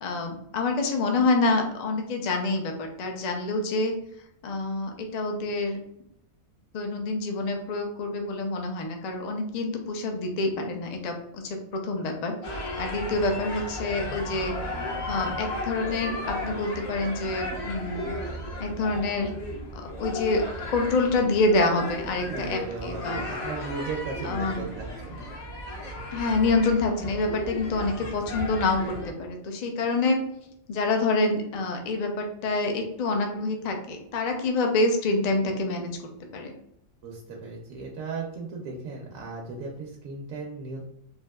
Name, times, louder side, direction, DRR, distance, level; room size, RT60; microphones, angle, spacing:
voice 1, 0.0-3.9 4.4-5.8 6.7-12.4 12.8-14.5 15.1-18.2 18.6-19.3 19.7-23.2 24.2-24.6 26.1-30.2 30.7-35.9 36.3-36.5, left 3 dB, 80° left, 3 dB, 0.3 m, -27 dB
sound 1, 12.4-29.1, left 1 dB, 55° left, 1.0 m, -35 dB
voice 2, 22.2-25.2 37.0-40.8, right 3 dB, 80° right, -1 dB, 1.0 m, -36 dB
3.5 x 2.6 x 2.2 m, 0.76 s
omnidirectional pair, 1.4 m